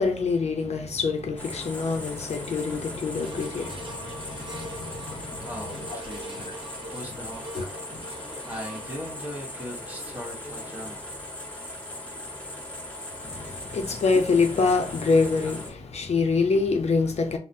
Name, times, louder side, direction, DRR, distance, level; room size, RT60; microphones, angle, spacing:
voice 1, 0.0-5.5 5.9-6.0 7.5-7.7 7.9-8.0 13.2-17.4, left 4 dB, 70° left, 0.6 m, -26 dB
sound 1, 1.4-15.7, left 1 dB, 15° left, 1.5 m, -39 dB
sound 2, 3.2-13.6 14.1-14.2, right 2 dB, 45° right, 0.9 m, -45 dB
voice 2, 5.5-6.6 6.9-11.1, equal, 15° right, 1.1 m, -40 dB
4.0 x 2.1 x 2.6 m
wide cardioid pair, 135°, 11 cm